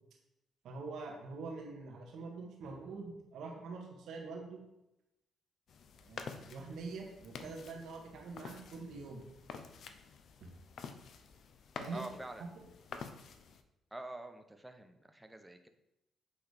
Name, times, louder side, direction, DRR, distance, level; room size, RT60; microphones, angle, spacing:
voice 1, 0.6-4.6 6.0-9.2 10.4-10.5 11.8-12.0 12.4-12.5, right 4 dB, 70° right, 0 dB, 1.8 m, -45 dB
sound 1, 5.7-13.6, left 5 dB, 65° left, 0.7 m, -49 dB
voice 2, 11.9-12.6 13.9-15.7, right 1 dB, 10° right, 7 dB, 1.0 m, -47 dB
8.7 x 3.9 x 5.1 m, 0.88 s
supercardioid pair, 60°, 0 cm